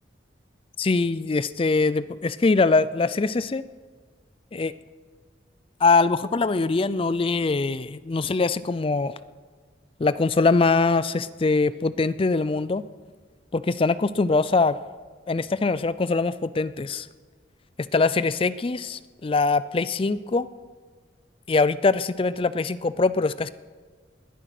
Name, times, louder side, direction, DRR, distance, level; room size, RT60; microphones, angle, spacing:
voice 1, 0.8-3.6 4.5-4.7 5.8-9.2 10.0-12.8 13.5-14.8 15.3-17.1 17.8-20.5 21.5-23.5, left 3 dB, 30° left, 16 dB, 0.4 m, -23 dB
20.0 x 10.0 x 6.0 m, 1.5 s
head